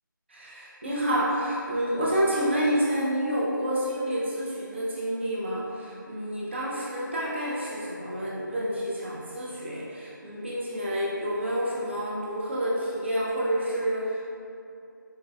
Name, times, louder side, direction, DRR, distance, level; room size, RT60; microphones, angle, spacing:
voice 1, 0.3-14.3, equal, 35° right, -6 dB, 0.4 m, -29 dB
4.2 x 2.2 x 2.3 m, 2.6 s
figure-of-eight pair, 160°, 11 cm